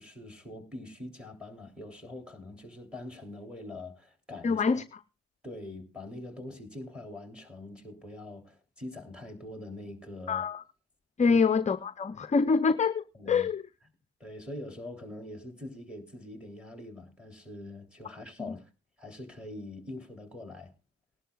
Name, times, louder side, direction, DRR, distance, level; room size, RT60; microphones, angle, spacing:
voice 1, 0.0-4.6 5.4-10.5 11.2-11.4 13.1-13.5 14.2-18.7 19.0-20.7, left 1 dB, 5° right, 3.4 m, -43 dB
voice 2, 4.4-4.8 10.3-10.6 11.2-13.6 18.4-18.5, left 5 dB, 25° left, 0.6 m, -26 dB
19.5 x 11.5 x 2.3 m
cardioid pair, 90°, 30 cm